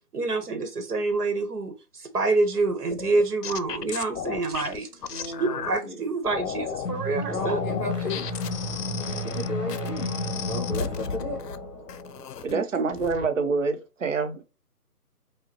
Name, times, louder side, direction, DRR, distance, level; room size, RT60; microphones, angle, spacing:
voice 1, 0.1-4.9 5.2-7.6 12.5-12.9, right 3 dB, 75° right, 1.1 m, -27 dB
sound 1, 2.9-5.8 6.3-6.9 7.3-11.6 11.9-12.5 12.9-13.3, left 8 dB, 85° left, 0.6 m, -35 dB
voice 2, 5.1-6.0 7.3-8.3 9.2-10.1 10.4-11.4, left 2 dB, 30° left, 1.7 m, -34 dB
sound 2, 6.8-12.4, left 2 dB, 50° left, 1.0 m, -32 dB
voice 3, 12.4-14.4, right 4 dB, 55° right, 0.7 m, -26 dB
5.0 x 2.2 x 2.8 m
hypercardioid pair, 175°, 47 cm